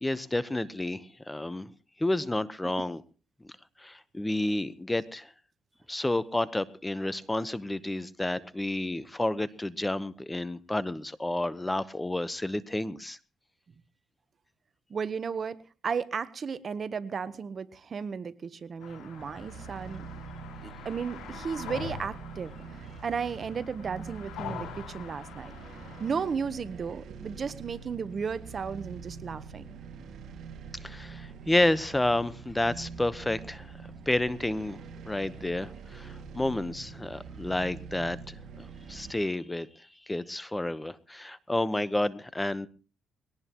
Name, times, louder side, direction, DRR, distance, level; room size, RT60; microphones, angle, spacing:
voice 1, 0.0-1.7 2.0-3.0 3.8-5.3 5.9-13.2 30.8-33.7 34.1-34.8 35.0-42.7, left 1 dB, 10° left, 16 dB, 1.0 m, -30 dB
voice 2, 14.9-20.0 20.6-22.5 23.0-25.5 26.0-29.7, right 6 dB, 45° right, 15 dB, 1.0 m, -34 dB
sound 1, 18.8-26.2, left 7 dB, 85° left, 6.0 m, -44 dB
sound 2, 19.2-39.1, right 5 dB, 65° right, 2.1 m, -45 dB
21.5 x 18.0 x 3.0 m, 0.35 s
cardioid pair, 90°, 0 cm